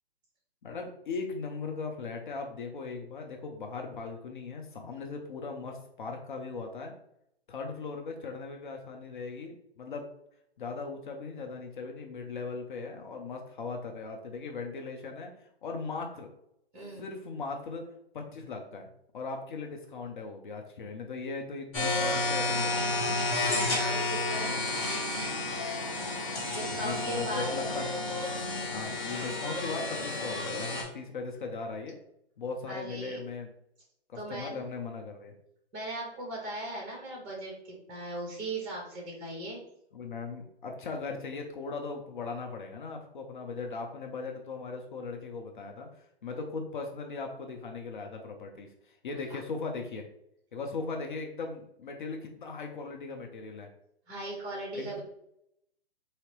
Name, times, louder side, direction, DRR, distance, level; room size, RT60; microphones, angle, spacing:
voice 1, 0.6-6.9 7.5-10.1 10.6-15.3 15.6-16.3 17.0-17.9 18.1-23.2 26.8-27.9 28.7-32.0 32.4-33.5 34.1-35.3 39.9-45.9 46.2-50.0 50.5-53.7 54.7-55.0, left 4 dB, 50° left, 3 dB, 0.7 m, -38 dB
voice 2, 16.7-17.0 23.4-24.6 26.5-27.5 32.7-33.2 34.1-34.6 35.7-39.6 54.1-55.0, right 2 dB, 20° right, -2 dB, 1.5 m, -38 dB
sound 1, 21.7-30.8, left 2 dB, 10° left, 0.4 m, -31 dB
3.9 x 2.8 x 3.1 m, 0.76 s
hypercardioid pair, 145°, 32 cm